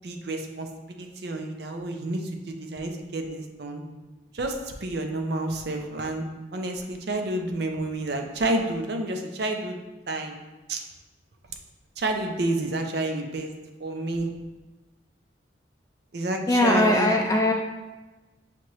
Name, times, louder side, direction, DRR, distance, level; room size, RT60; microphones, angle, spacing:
voice 1, 0.0-3.8 4.3-6.2 6.5-9.8 10.1-10.4 10.7-10.8 12.0-13.5 13.8-14.3 16.1-17.2, right 2 dB, 60° right, 4 dB, 0.5 m, -29 dB
voice 2, 16.5-17.5, left 1 dB, 15° left, 2 dB, 0.3 m, -20 dB
5.8 x 2.9 x 3.1 m, 1.1 s
head